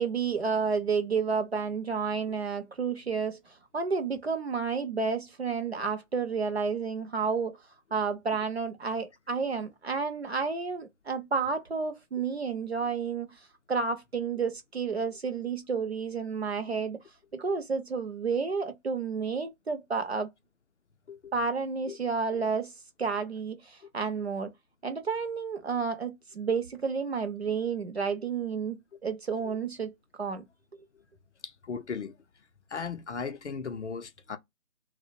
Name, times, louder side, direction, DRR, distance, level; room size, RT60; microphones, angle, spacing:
voice 1, 0.0-7.6 7.9-13.4 13.7-17.0 17.3-20.3 21.3-22.7 23.0-24.5 24.8-28.8 29.0-29.9 30.2-30.4, right 5 dB, 50° right, 0.5 m, -31 dB
voice 2, 31.4-32.2 32.7-34.4, left 5 dB, 55° left, 0.5 m, -37 dB
2.4 x 2.0 x 2.6 m
figure-of-eight pair, 165°, 42 cm